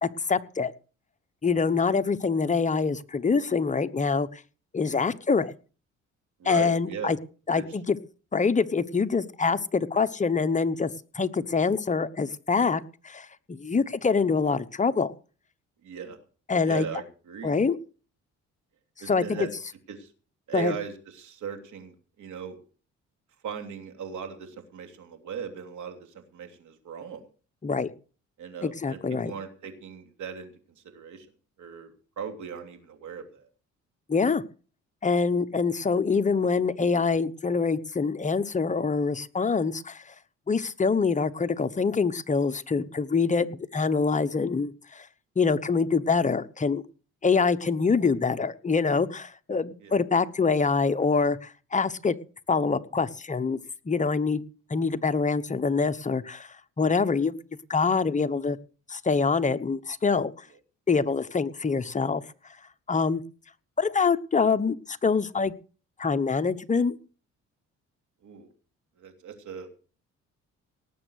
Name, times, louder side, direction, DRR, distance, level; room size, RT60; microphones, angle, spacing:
voice 1, 0.0-0.7 1.4-4.4 4.7-5.5 6.4-7.2 7.5-8.0 8.3-10.9 11.1-15.1 16.5-16.9 17.4-17.8 19.1-19.4 20.5-20.7 27.6-27.9 28.6-29.3 34.1-34.4 35.0-40.0 40.5-45.1 45.4-46.8 47.2-52.2 52.5-53.6 53.9-54.4 54.7-57.4 57.7-58.6 58.9-60.3 60.9-62.2 62.9-63.2 63.8-65.5 66.0-67.0, left 5 dB, 25° left, 10 dB, 1.1 m, -25 dB
voice 2, 6.4-7.1 7.5-7.6 15.8-16.2 16.6-17.6 19.0-19.5 19.9-20.1 20.5-22.6 23.4-27.2 28.4-30.5 30.9-31.3 31.6-33.5 49.8-49.9 68.2-68.5 69.0-69.7, right 7 dB, 75° right, 6 dB, 3.2 m, -38 dB
18.5 x 7.4 x 6.5 m, 0.38 s
cardioid pair, 90°, 30 cm